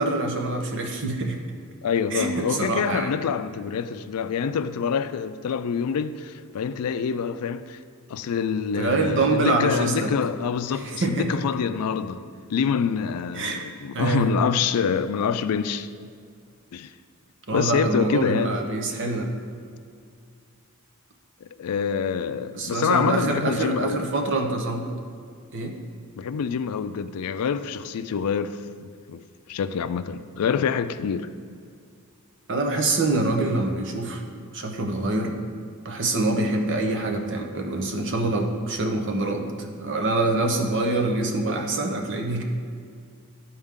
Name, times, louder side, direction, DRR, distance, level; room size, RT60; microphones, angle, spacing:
voice 1, 0.0-1.4 2.1-3.1 8.7-10.1 10.8-11.3 13.3-13.6 13.9-14.3 17.5-19.3 22.5-24.9 25.5-25.8 32.5-34.3 34.5-35.3 35.8-42.4, right 2 dB, 55° right, 0.9 m, -25 dB
voice 2, 1.8-7.8 8.1-12.2 12.5-15.9 16.7-16.9 17.5-18.6 21.4-24.0 26.2-29.2 29.5-31.3, left 6 dB, 85° left, 0.4 m, -26 dB
12.5 x 4.4 x 3.7 m
head